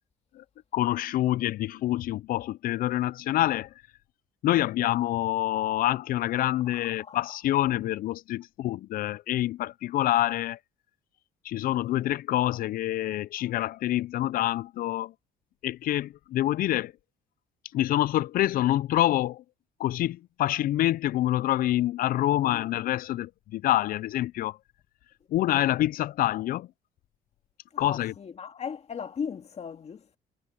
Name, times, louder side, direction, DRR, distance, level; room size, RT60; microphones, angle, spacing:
voice 1, 0.7-3.7 4.4-10.6 11.4-15.1 15.6-16.9 17.7-19.4 19.8-24.6 25.3-26.7 27.8-28.1, left 14 dB, 60° left, 0.4 m, -26 dB
voice 2, 6.6-7.3 22.4-22.7 27.7-30.2, left 6 dB, 40° left, 2.2 m, -38 dB
cardioid pair, 110°, 17 cm